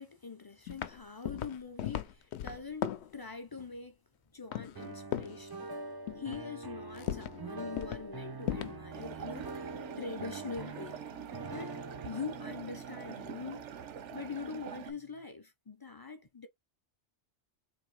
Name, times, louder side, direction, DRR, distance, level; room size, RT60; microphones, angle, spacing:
voice 1, 0.0-4.0 4.3-5.7 6.2-11.0 11.5-11.8 12.0-13.7 14.1-16.5, left 5 dB, 35° left, 0.4 m, -43 dB
sound 1, 0.7-1.0 1.2-3.1 4.5-4.9 5.1-5.4 6.1-6.4 6.9-7.4 7.8-8.1 8.4-8.8, left 11 dB, 75° left, 0.8 m, -37 dB
sound 2, 4.8-14.7, right 3 dB, 30° right, 0.4 m, -45 dB
sound 3, 8.9-14.9, right 9 dB, 90° right, 1.1 m, -45 dB
3.9 x 2.7 x 4.7 m
omnidirectional pair, 1.2 m